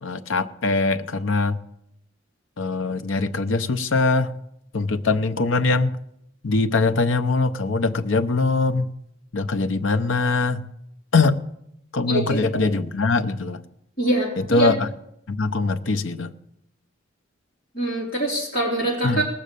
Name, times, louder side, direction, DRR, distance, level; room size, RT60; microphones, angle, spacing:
voice 1, 0.0-1.6 2.6-4.3 4.7-5.9 6.4-8.9 9.3-10.6 11.1-11.4 11.9-13.6 14.4-14.9 15.3-16.3 19.0-19.2, left 3 dB, 85° left, 11 dB, 0.7 m, -22 dB
voice 2, 12.0-12.6 14.0-14.7 17.7-19.2, right 1 dB, 45° left, -4 dB, 3.5 m, -24 dB
18.5 x 7.5 x 6.8 m, 0.79 s
head